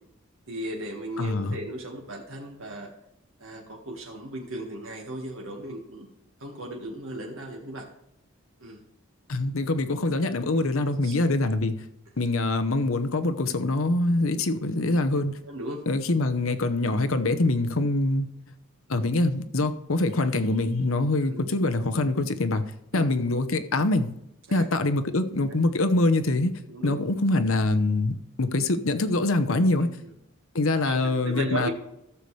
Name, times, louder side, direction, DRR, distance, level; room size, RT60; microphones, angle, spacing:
voice 1, 0.5-2.9 3.4-6.1 6.4-7.9 8.6-8.8 11.0-11.2 15.5-15.8 21.2-21.4 22.9-23.1 24.5-24.7 26.7-26.9 29.8-29.9 30.8-31.7, right 1 dB, 80° right, 1.7 m, -36 dB
voice 2, 1.2-1.6 9.3-11.7 12.2-15.4 15.9-18.3 18.9-22.6 22.9-24.1 24.5-26.5 26.8-29.9 30.5-31.7, left 2 dB, 85° left, 0.9 m, -24 dB
14.5 x 7.0 x 3.3 m
head